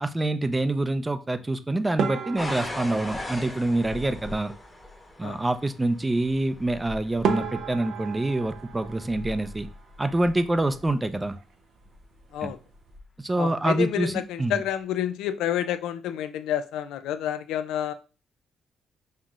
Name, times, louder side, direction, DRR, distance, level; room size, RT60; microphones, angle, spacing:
voice 1, 0.0-4.5 5.2-9.7 10.0-11.3 12.4-12.5 13.2-14.1 14.4-14.6, right 2 dB, 15° right, 10 dB, 0.5 m, -26 dB
sound 1, 2.0-4.4 6.7-6.8 7.2-10.0 10.3-11.0 11.3-11.5 11.8-11.9 12.6-12.9, right 6 dB, 70° right, 0.6 m, -33 dB
sound 2, 2.4-11.2 11.9-12.3 12.9-13.0, left 1 dB, 15° left, 1.0 m, -40 dB
voice 2, 13.4-17.9, left 10 dB, 90° left, 11 dB, 0.4 m, -29 dB
5.5 x 3.0 x 2.4 m, 0.35 s
cardioid pair, 90°, 0 cm